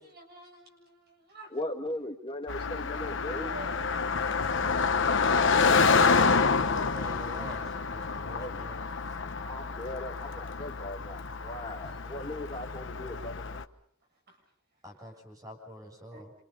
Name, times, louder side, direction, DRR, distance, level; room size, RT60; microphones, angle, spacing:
voice 1, 0.0-1.5 3.2-4.4 8.1-8.2 10.3-10.4 11.9-12.0 13.0-13.2 14.3-14.4 16.1-16.3, right 1 dB, 50° right, 2 dB, 7.5 m, -48 dB
voice 2, 1.5-3.5 8.4-8.6 9.4-13.6, left 1 dB, 25° left, 3 dB, 1.8 m, -38 dB
Car passing by, 2.5-13.6, left 5 dB, 65° left, 1.1 m, -28 dB
voice 3, 5.9-8.8 9.1-9.2 14.8-16.3, equal, 20° right, 2 dB, 7.0 m, -46 dB
28.5 x 26.5 x 5.4 m, 0.63 s
head